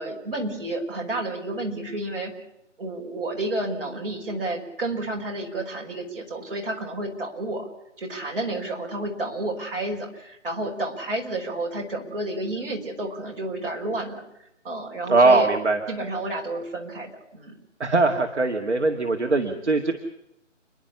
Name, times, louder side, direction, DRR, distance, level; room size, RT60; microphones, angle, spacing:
voice 1, 0.0-2.3 2.8-7.7 8.0-15.5 15.9-17.6, right 2 dB, 45° right, 0 dB, 5.3 m, -31 dB
voice 2, 15.1-15.8 17.8-19.9, right 3 dB, 65° right, 4 dB, 2.2 m, -20 dB
30.0 x 11.0 x 9.7 m, 0.82 s
figure-of-eight pair, 160°, 37 cm